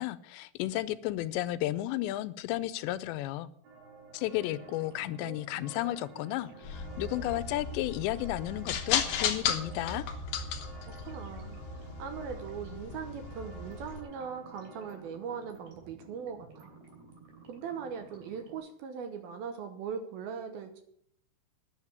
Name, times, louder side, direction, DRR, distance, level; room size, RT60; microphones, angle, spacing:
voice 1, 0.0-3.5 4.1-10.1, left 15 dB, 85° left, 15 dB, 2.8 m, -33 dB
sound 1, 3.6-15.0, right 3 dB, 90° right, 5.3 m, -52 dB
sound 2, 4.4-18.6, right 4 dB, 45° right, 4.0 m, -53 dB
sound 3, 6.6-14.0, left 7 dB, 70° left, 2.3 m, -35 dB
voice 2, 10.9-16.7 17.5-20.8, right 6 dB, 70° right, 7 dB, 2.5 m, -40 dB
10.0 x 7.4 x 9.4 m, 0.69 s
omnidirectional pair, 5.1 m